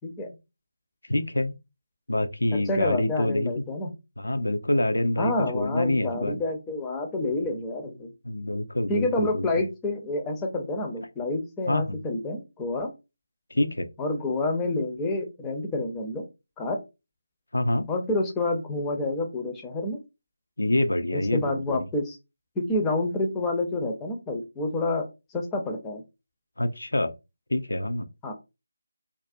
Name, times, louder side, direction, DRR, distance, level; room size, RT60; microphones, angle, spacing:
voice 1, 1.1-1.6 2.1-3.5 4.2-6.4 8.2-9.5 11.7-12.0 13.5-13.9 17.5-17.9 20.6-21.9 26.6-27.1 27.5-28.1, left 1 dB, 75° left, 0.3 m, -26 dB
voice 2, 2.5-3.9 5.2-8.1 8.9-12.9 14.0-16.2 16.6-16.8 17.9-20.0 21.3-22.2 22.6-25.1 25.3-26.0 28.2-28.3, left 2 dB, 10° left, 0.4 m, -28 dB
2.4 x 2.0 x 2.5 m
figure-of-eight pair, 160°, 0 cm